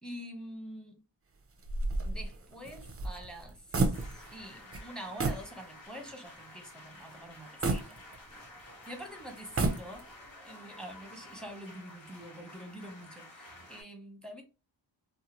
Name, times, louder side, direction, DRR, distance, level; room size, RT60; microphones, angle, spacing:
voice 1, 0.0-1.0 2.0-8.0 8.9-10.1 10.4-14.4, equal, ahead, 0.9 m, -46 dB
sound 1, 1.6-4.4 4.7-4.9 5.2-5.5 6.0-6.1 7.6-8.6 9.4-10.2, right 3 dB, 35° right, 0.5 m, -32 dB
sound 2, 3.9-13.8, left 1 dB, 75° left, 1.2 m, -52 dB
2.7 x 2.2 x 2.9 m
wide cardioid pair, 80°, 44 cm